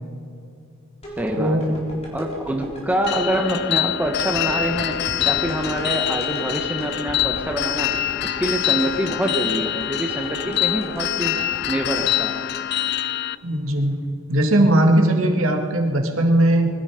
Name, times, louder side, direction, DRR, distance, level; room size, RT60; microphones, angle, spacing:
sound 1, 1.0-13.2 13.6-13.7, equal, 30° left, 4.2 m, -37 dB
voice 1, 1.2-1.7 2.1-11.4 11.7-12.5, right 1 dB, 5° right, 3 dB, 1.1 m, -25 dB
sound 2, 3.1-13.4, left 13 dB, 50° left, 0.4 m, -25 dB
voice 2, 13.4-16.7, right 1 dB, 70° right, 2 dB, 2.1 m, -19 dB
22.0 x 13.0 x 5.1 m, 2.5 s
head